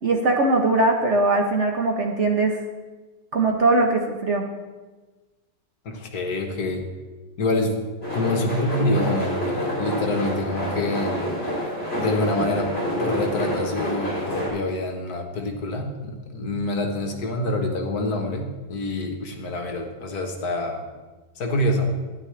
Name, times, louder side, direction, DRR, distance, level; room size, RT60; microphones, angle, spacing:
voice 1, 0.0-2.6 3.3-4.5, right 2 dB, 50° right, 2 dB, 1.1 m, -20 dB
voice 2, 5.8-6.8 7.4-7.8 8.1-11.2 11.9-20.8 21.4-21.9, left 2 dB, 60° left, 3 dB, 1.6 m, -26 dB
sound 1, 8.0-14.5, equal, 35° left, 3.2 m, -28 dB
12.5 x 10.0 x 3.3 m, 1.2 s
omnidirectional pair, 1.9 m